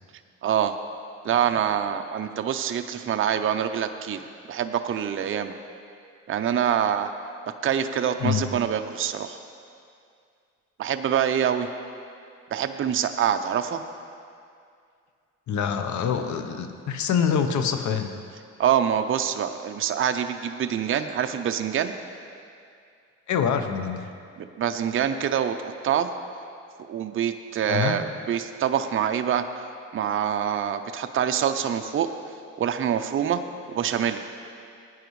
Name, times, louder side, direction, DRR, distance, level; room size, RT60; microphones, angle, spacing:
voice 1, 0.4-0.8 1.2-4.2 4.5-5.5 6.3-7.1 7.6-9.4 10.8-11.7 12.5-13.8 18.6-21.9 24.6-26.1 26.9-29.6 29.9-32.1 32.6-33.4 33.7-34.3, right 9 dB, 45° right, 7 dB, 0.6 m, -25 dB
voice 2, 15.5-18.1 21.0-21.1 23.3-24.1 27.7-28.0, left 7 dB, 70° left, 7 dB, 0.9 m, -25 dB
16.5 x 9.3 x 3.2 m, 2.4 s
cardioid pair, 90°, 30 cm